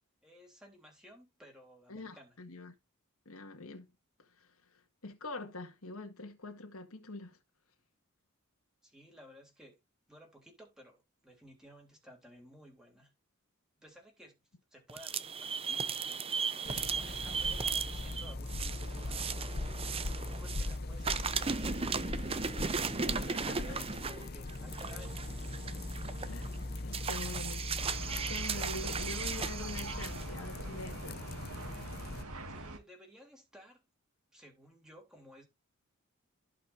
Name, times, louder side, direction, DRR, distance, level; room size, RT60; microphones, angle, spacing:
voice 1, 0.2-2.4 8.8-9.8 10.1-13.1 13.8-16.0 16.5-19.7 20.3-22.5 22.9-25.3 32.5-33.9 34.3-35.5, equal, 5° right, 3.3 m, -56 dB
voice 2, 1.9-2.7 3.3-3.9 4.4-7.4 17.3-17.4 23.0-23.6 26.3-26.6 26.8-27.7 28.2-31.4 31.7-32.0, left 2 dB, 75° left, 2.0 m, -45 dB
sound 1, 14.9-20.7 21.0-30.2, right 5 dB, 25° right, 0.6 m, -37 dB
sound 2, 16.6-32.2, left 2 dB, 45° left, 0.8 m, -40 dB
sound 3, 27.8-32.8, right 2 dB, 85° right, 2.0 m, -44 dB
15.5 x 5.7 x 2.7 m
head